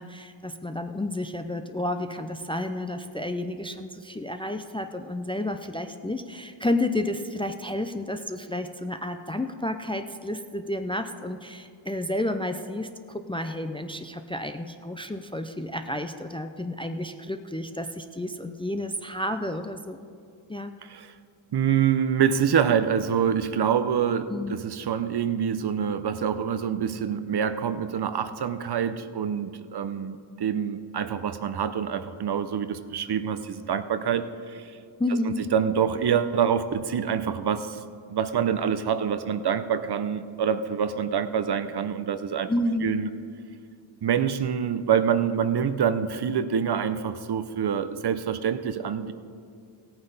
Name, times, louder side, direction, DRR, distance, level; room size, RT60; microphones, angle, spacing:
voice 1, 0.0-20.1 20.5-20.7 24.3-24.5 35.0-35.5 42.5-43.1, left 1 dB, 10° left, 7 dB, 0.4 m, -31 dB
voice 2, 20.8-21.2 21.5-34.8 35.3-37.8 38.1-42.5 42.8-43.1 44.0-49.1, right 8 dB, 55° right, 12 dB, 0.6 m, -26 dB
16.5 x 8.8 x 4.0 m, 2.2 s
wide cardioid pair, 105°, 49 cm